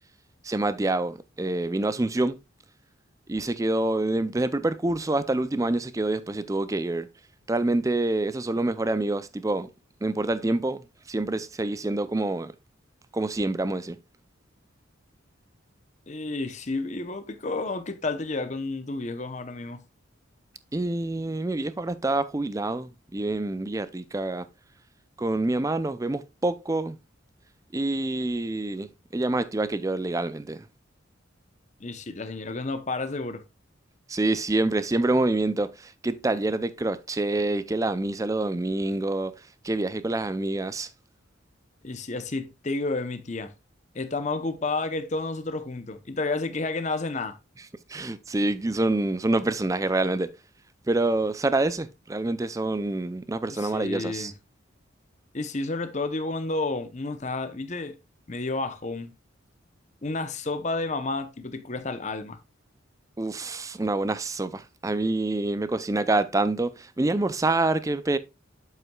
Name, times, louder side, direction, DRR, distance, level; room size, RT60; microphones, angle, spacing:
voice 1, 0.4-2.4 3.3-7.1 7.5-9.7 10.0-12.5 13.1-14.0 20.7-24.5 25.2-27.0 27.7-30.6 34.1-39.3 39.6-40.9 47.9-50.3 50.9-54.3 63.2-68.2, right 2 dB, 15° right, 0.4 m, -26 dB
voice 2, 16.1-19.8 31.8-33.4 41.8-43.5 43.9-47.4 53.5-54.3 55.3-58.0 58.3-59.1 60.0-62.4, left 3 dB, 35° left, 0.8 m, -31 dB
8.0 x 7.6 x 2.3 m
head